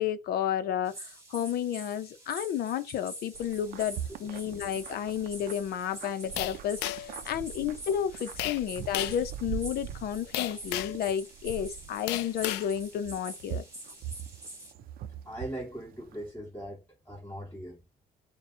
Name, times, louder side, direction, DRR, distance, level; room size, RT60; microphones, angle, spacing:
voice 1, 0.0-13.6, left 9 dB, 65° left, 0.7 m, -32 dB
sound 1, 0.8-14.7, right 1 dB, 15° right, 2.2 m, -46 dB
sound 2, 3.3-16.3, right 9 dB, 60° right, 0.5 m, -43 dB
sound 3, 6.4-7.2 8.4-8.6 8.9-9.2 10.3-11.0 12.1-12.7, left 14 dB, 90° left, 0.4 m, -33 dB
voice 2, 15.2-17.8, right 1 dB, 10° left, 2.1 m, -40 dB
6.7 x 2.3 x 2.9 m
cardioid pair, 110°, 17 cm